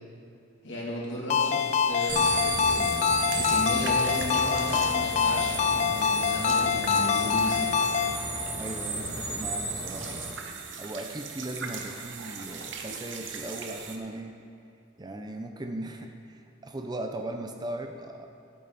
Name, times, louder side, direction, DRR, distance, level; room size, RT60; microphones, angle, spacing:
voice 1, 0.6-3.0 3.3-7.7, left 1 dB, 65° left, -5 dB, 2.7 m, -35 dB
Ringtone, 1.3-8.2, left 6 dB, 35° left, 0.3 m, -25 dB
sound 1, 1.9-14.0, right 5 dB, 65° right, 0.9 m, -40 dB
sound 2, 2.1-10.3, right 3 dB, 85° right, 1.6 m, -34 dB
voice 2, 8.6-10.2 10.8-14.3 15.0-18.3, right 1 dB, 20° right, 5 dB, 0.5 m, -38 dB
13.0 x 8.5 x 4.1 m, 2.5 s
head